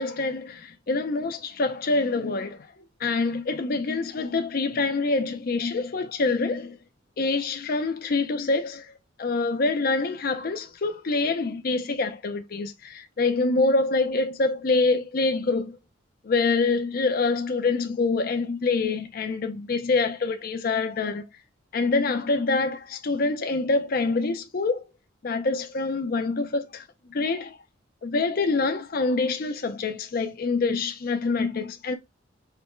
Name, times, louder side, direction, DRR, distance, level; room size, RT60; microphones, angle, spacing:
voice 1, 0.0-2.7 3.0-6.8 7.2-8.9 9.2-15.7 16.2-21.2 21.7-24.8 25.2-26.8 27.1-27.6 28.0-32.0, left 3 dB, 50° left, 0.5 m, -25 dB
4.9 x 2.1 x 4.4 m
head